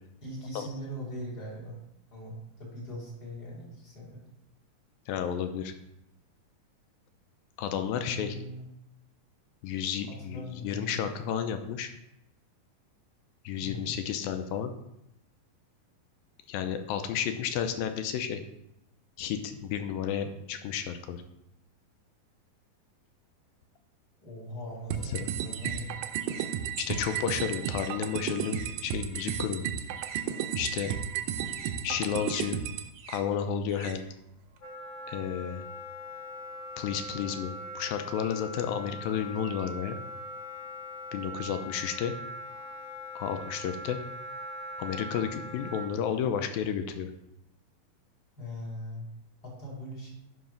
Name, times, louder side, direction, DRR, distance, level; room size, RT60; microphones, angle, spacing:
voice 1, 0.2-1.8 2.1-4.2 8.0-8.7 10.1-11.0 13.6-13.9 24.2-26.0 48.4-49.1 49.4-50.1, equal, 30° left, -5 dB, 3.1 m, -40 dB
voice 2, 5.1-5.7 7.6-8.4 9.6-11.9 13.5-14.7 16.5-18.4 19.2-21.2 25.1-25.3 26.8-29.7 30.6-30.9 31.8-32.6 33.1-34.0 35.1-35.6 36.8-40.0 41.1-42.1 43.2-44.0 44.8-47.1, left 8 dB, 85° left, 8 dB, 2.4 m, -32 dB
sound 1, 24.7-29.5 29.8-34.6, right 6 dB, 70° right, 1.4 m, -48 dB
sound 2, 24.9-32.9, right 9 dB, 90° right, 1.8 m, -33 dB
Wind instrument woodwind instrument, 34.6-45.9, left 1 dB, 50° left, 1.3 m, -41 dB
10.0 x 4.7 x 5.3 m, 0.83 s
omnidirectional pair, 4.2 m